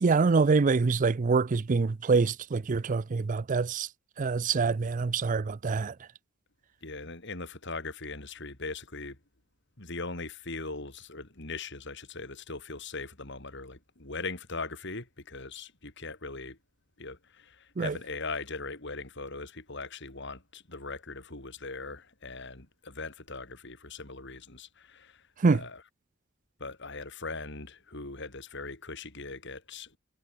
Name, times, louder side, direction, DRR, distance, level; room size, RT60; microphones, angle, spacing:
voice 1, 0.0-3.9 4.2-5.9 17.8-17.9 25.4-25.6, right 4 dB, 40° right, 0.5 m, -25 dB
voice 2, 6.8-9.2 9.8-16.6 17.0-25.8 26.6-30.0, left 3 dB, 60° left, 4.7 m, -40 dB
head